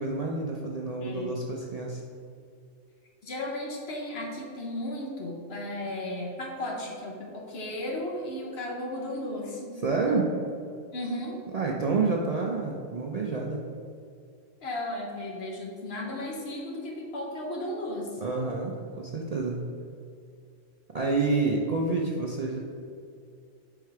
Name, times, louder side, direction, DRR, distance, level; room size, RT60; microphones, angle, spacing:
voice 1, 0.0-2.0 9.8-10.3 11.5-13.6 18.2-19.6 20.9-22.6, right 3 dB, 65° right, -1 dB, 0.3 m, -28 dB
voice 2, 1.0-1.4 3.2-9.7 10.9-11.4 14.6-18.2, left 1 dB, 55° left, -1 dB, 1.1 m, -35 dB
4.9 x 4.4 x 4.6 m, 2.3 s
omnidirectional pair, 1.4 m